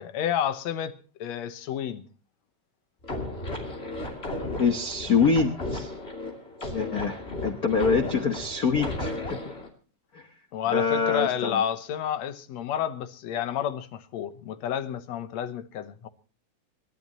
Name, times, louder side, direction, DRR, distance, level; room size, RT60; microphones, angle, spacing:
voice 1, 0.0-2.0 10.5-16.1, left 9 dB, 70° left, 2.2 m, -30 dB
sound 1, 3.0-9.7, left 2 dB, 20° left, 2.8 m, -34 dB
voice 2, 4.6-5.9 6.7-9.2 9.4-9.5 10.1-10.2 10.7-11.6, left 5 dB, 85° left, 0.8 m, -25 dB
27.5 x 12.0 x 3.0 m
omnidirectional pair, 3.4 m